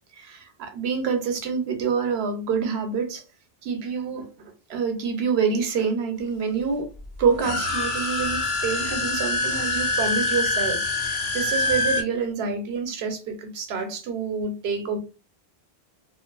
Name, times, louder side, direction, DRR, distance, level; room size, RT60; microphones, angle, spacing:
voice 1, 0.1-3.2 3.6-4.3 4.7-6.9 7.2-15.0, right 5 dB, 90° right, 0.9 m, -27 dB
sound 1, 7.3-12.0, left 2 dB, 80° left, 0.9 m, -25 dB
2.5 x 2.5 x 2.3 m
omnidirectional pair, 1.0 m